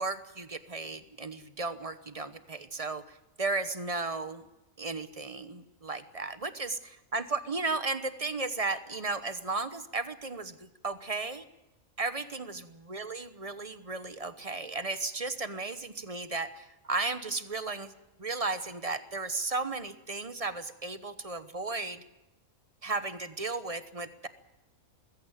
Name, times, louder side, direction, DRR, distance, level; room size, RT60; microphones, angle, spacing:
voice 1, 0.0-4.5 4.8-11.5 12.0-17.9 18.2-22.0 22.8-24.3, right 3 dB, 30° right, 12 dB, 1.0 m, -35 dB
20.5 x 16.0 x 9.1 m, 0.98 s
omnidirectional pair, 1.4 m